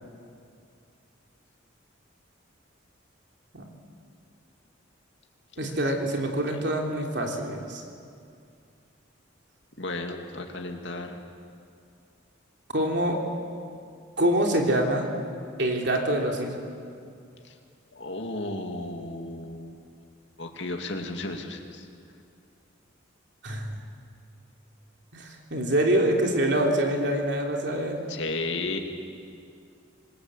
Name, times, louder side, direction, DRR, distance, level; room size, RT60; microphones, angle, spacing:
voice 1, 5.6-7.8 12.7-13.2 14.2-15.1 15.6-16.6 23.4-23.8 25.1-28.0, right 1 dB, 60° right, 1 dB, 3.4 m, -25 dB
voice 2, 9.8-11.2 17.4-17.5 17.9-19.8 20.4-21.9 28.1-28.8, left 2 dB, 60° left, 3 dB, 2.6 m, -34 dB
27.5 x 21.0 x 8.3 m, 2.4 s
head